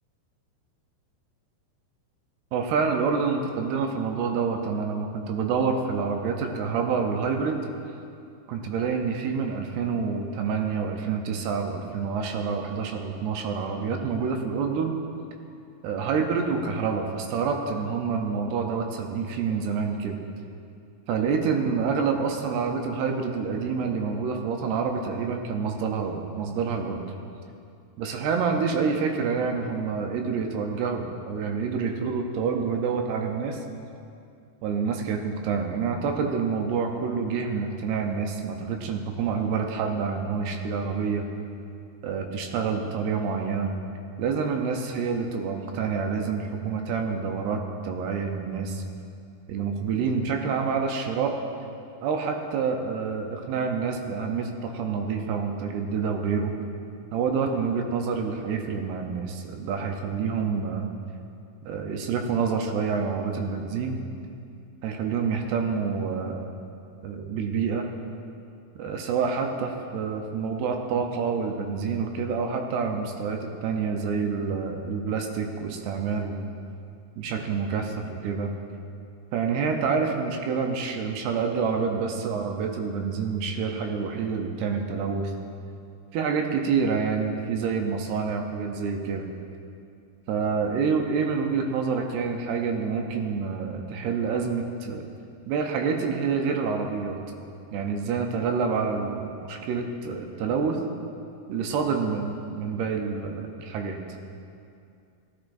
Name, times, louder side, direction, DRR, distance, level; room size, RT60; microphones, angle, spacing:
voice 1, 2.5-7.6 8.5-14.9 15.8-20.2 21.1-27.1 28.0-33.6 34.6-41.3 42.0-43.7 44.2-48.8 49.5-51.4 52.0-56.5 57.1-60.9 61.7-64.0 64.8-66.5 67.0-67.9 68.8-76.4 77.2-78.5 79.3-85.3 86.1-89.3 90.3-95.0 95.5-97.2 97.7-100.8 101.5-104.0, right 5 dB, 80° right, 4 dB, 2.6 m, -27 dB
15.5 x 12.0 x 2.6 m, 2.5 s
omnidirectional pair, 5.0 m